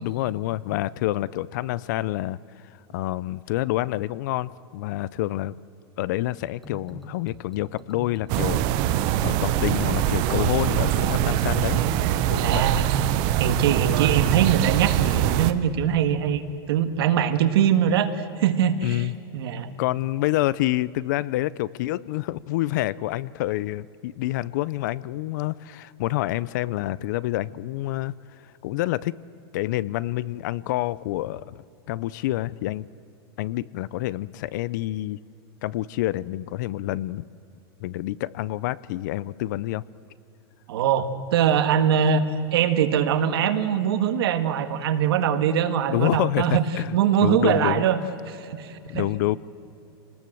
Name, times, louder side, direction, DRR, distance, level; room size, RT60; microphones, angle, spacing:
voice 1, 0.0-5.6 6.0-8.7 9.2-11.8 12.3-12.7 18.8-19.4 19.8-28.1 28.4-29.1 29.5-32.9 33.4-35.2 35.6-37.2 37.8-39.8 45.9-47.0 47.2-47.8 48.9-49.4, left 16 dB, 45° left, 21 dB, 0.5 m, -27 dB
sound 1, 6.4-12.6, equal, ahead, 1.1 m, -44 dB
sound 2, 8.3-15.5, right 12 dB, 30° right, 0.7 m, -23 dB
voice 2, 12.4-12.9 13.4-16.4 16.7-18.1 18.4-19.1 19.3-19.7 40.7-42.2 42.5-46.6 46.9-48.0 48.3-49.1, right 9 dB, 65° right, 10 dB, 1.7 m, -22 dB
26.5 x 19.5 x 7.8 m, 2.6 s
supercardioid pair, 170°, 14 cm